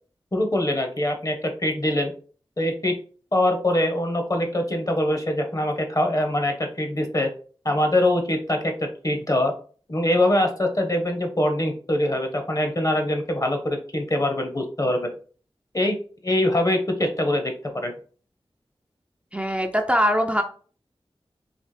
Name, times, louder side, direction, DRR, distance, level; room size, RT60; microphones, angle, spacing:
voice 1, 0.3-2.1 2.6-2.9 3.3-7.3 7.6-9.5 9.9-15.1 15.7-16.0 16.2-17.5 17.8-17.9, left 1 dB, 35° left, 4 dB, 0.9 m, -23 dB
voice 2, 19.3-20.4, equal, 10° right, 4 dB, 0.4 m, -22 dB
4.2 x 2.9 x 3.2 m, 0.41 s
wide cardioid pair, 70°, 10 cm